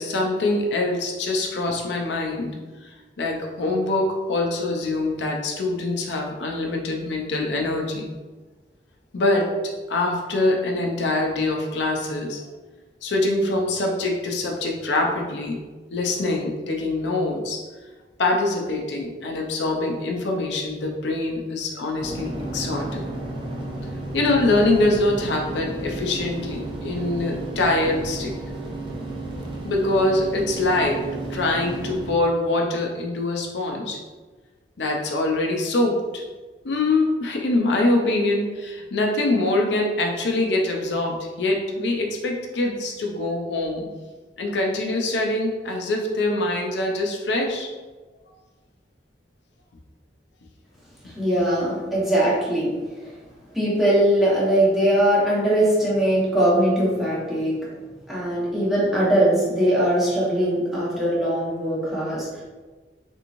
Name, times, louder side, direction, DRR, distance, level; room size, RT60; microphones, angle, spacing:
voice 1, 0.0-2.5 2.8-8.1 9.1-9.5 9.9-12.4 13.0-15.6 15.9-17.6 18.2-23.1 24.1-28.4 29.6-31.0 31.3-34.0 34.8-36.2 36.6-43.9 44.4-47.7, left 2 dB, 80° left, 1 dB, 0.5 m, -24 dB
sound 1, 22.0-32.1, right 2 dB, 30° right, 0.5 m, -33 dB
voice 2, 51.0-52.7 53.0-53.1 53.5-57.5 58.1-62.4, right 1 dB, ahead, -8 dB, 1.0 m, -21 dB
3.4 x 3.0 x 2.5 m, 1.3 s
head